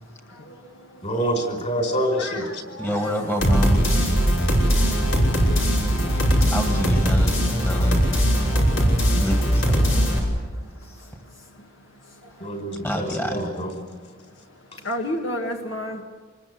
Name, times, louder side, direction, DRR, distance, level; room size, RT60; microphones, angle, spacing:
voice 1, 1.0-2.6 12.4-13.7, right 1 dB, 35° left, 5 dB, 5.0 m, -26 dB
voice 2, 2.2-3.2 14.9-16.0, left 1 dB, 70° left, 3 dB, 1.9 m, -30 dB
voice 3, 2.8-3.9 6.5-8.1 9.0-10.1 10.8-11.2 12.8-13.4, equal, 10° left, 3 dB, 1.9 m, -28 dB
sound 1, 3.4-10.2, equal, 85° left, 5.8 m, -20 dB
26.5 x 21.0 x 8.0 m, 1.5 s
head